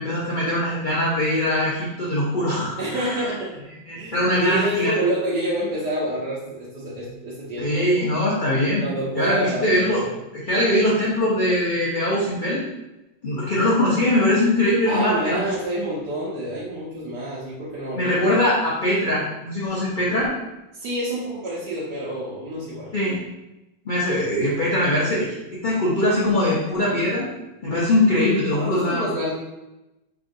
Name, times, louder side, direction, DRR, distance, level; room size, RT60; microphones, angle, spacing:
voice 1, 0.0-3.3 3.9-4.9 7.6-8.9 9.1-10.0 10.5-12.6 13.2-15.5 17.9-20.3 22.9-23.2 23.9-25.3 25.6-27.2 27.6-29.2, left 1 dB, 70° left, -7 dB, 0.4 m, -22 dB
voice 2, 2.8-3.7 3.9-7.8 8.5-10.1 14.9-18.1 20.7-22.9 28.6-29.3, right 1 dB, 65° right, -7 dB, 1.3 m, -28 dB
4.8 x 3.5 x 2.6 m, 0.98 s
omnidirectional pair, 2.0 m